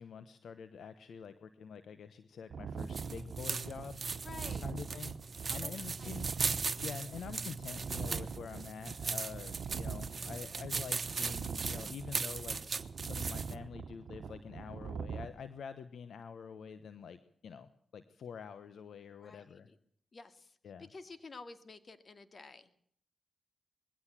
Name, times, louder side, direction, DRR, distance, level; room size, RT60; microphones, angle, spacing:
voice 1, 0.0-4.0 4.6-5.2 5.5-6.3 6.8-12.6 13.0-19.7 20.6-20.9, left 6 dB, 75° left, 13 dB, 1.1 m, -46 dB
sound 1, 2.5-15.3, right 6 dB, 70° right, 1.2 m, -43 dB
sound 2, 2.8-13.5, right 4 dB, 50° right, 1.4 m, -39 dB
voice 2, 4.2-4.7 5.5-6.3 19.2-19.8 20.1-20.6 20.9-22.9, left 3 dB, 50° left, 11 dB, 2.4 m, -51 dB
21.0 x 16.5 x 7.5 m, 0.63 s
supercardioid pair, 40°, 0 cm